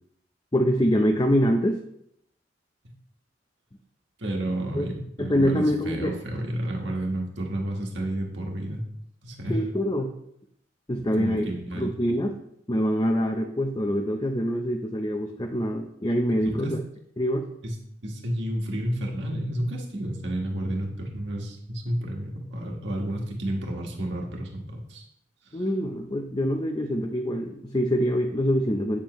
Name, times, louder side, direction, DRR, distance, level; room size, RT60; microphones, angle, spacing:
voice 1, 0.5-1.8 4.7-4.9 5.2-6.1 9.5-10.1 10.9-11.4 11.8-12.4 12.7-16.8 17.2-17.5 25.5-29.0, equal, 25° left, 3 dB, 0.6 m, -25 dB
voice 2, 4.2-8.8 9.2-9.6 11.0-11.9 16.4-16.7 17.6-17.7 18.0-25.0 25.4-25.6, right 1 dB, 75° right, 0 dB, 1.6 m, -31 dB
8.8 x 7.3 x 3.1 m, 0.74 s
head